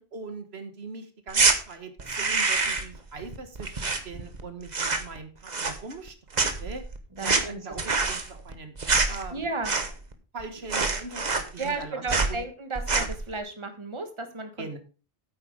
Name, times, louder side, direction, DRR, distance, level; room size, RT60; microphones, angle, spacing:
voice 1, 0.1-6.8 7.2-8.8 9.1-9.4 10.3-12.4 14.6-14.8, right 4 dB, 85° right, 8 dB, 1.7 m, -41 dB
sound 1, 1.3-1.6 2.0-3.0 3.2-4.4 4.7-5.2 5.5-6.1 6.3-10.1 10.4-10.5 10.7-11.8 12.1-12.4 12.8-13.2, right 4 dB, 45° right, 1.3 m, -26 dB
voice 2, 7.2-7.6 9.3-9.7 11.6-14.8, right 3 dB, 30° right, 7 dB, 1.5 m, -34 dB
9.3 x 8.1 x 5.0 m, 0.36 s
omnidirectional pair, 1.0 m